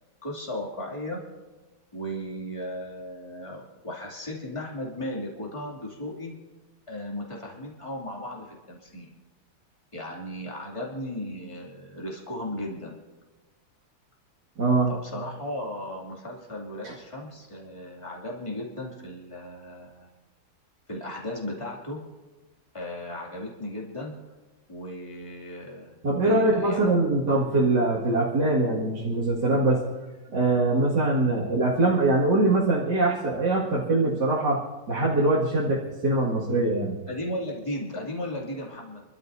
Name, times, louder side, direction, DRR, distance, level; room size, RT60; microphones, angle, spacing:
voice 1, 0.2-1.2 1.9-6.3 6.9-9.1 9.9-13.0 14.9-20.1 20.9-22.0 22.7-24.2 24.7-26.9 37.1-39.0, left 1 dB, 15° left, -3 dB, 2.6 m, -36 dB
voice 2, 14.6-14.9 16.8-16.9 26.0-29.8 30.3-34.6 34.9-37.0, right 2 dB, 55° right, -7 dB, 2.7 m, -23 dB
28.5 x 13.0 x 2.7 m, 1.2 s
omnidirectional pair, 2.2 m